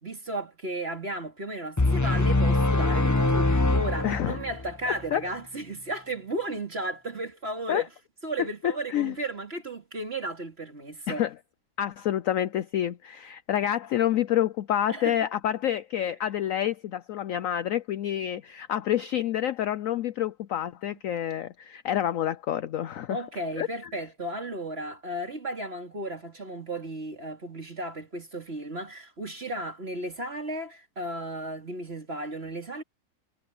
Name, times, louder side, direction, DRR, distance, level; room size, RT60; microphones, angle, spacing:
voice 1, 0.0-7.9 8.2-11.3 14.9-15.2 23.1-32.8, right 1 dB, 35° right, 3.9 m, -34 dB
sound 1, 1.8-4.7, left 2 dB, 20° left, 0.5 m, -23 dB
voice 2, 4.0-4.4 4.9-5.2 7.7-7.9 8.6-9.1 11.1-11.3 11.8-23.2 23.6-23.7, left 11 dB, 70° left, 0.8 m, -28 dB
omnidirectional pair, 1.9 m